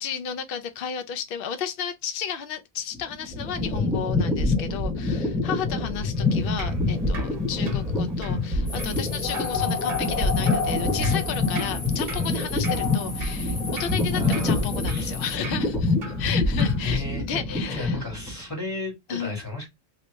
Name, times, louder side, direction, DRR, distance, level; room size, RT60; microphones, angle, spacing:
voice 1, 0.0-18.0 19.1-19.4, left 8 dB, 60° left, 0.8 m, -33 dB
sound 1, 2.9-18.4, left 3 dB, ahead, 0.9 m, -26 dB
Drip, 6.2-16.8, right 4 dB, 60° right, 1.0 m, -43 dB
sound 2, 8.7-15.4, left 5 dB, 40° left, 1.1 m, -32 dB
voice 2, 14.1-15.1 16.8-19.7, left 2 dB, 15° left, 1.8 m, -33 dB
2.9 x 2.7 x 3.2 m
omnidirectional pair, 1.1 m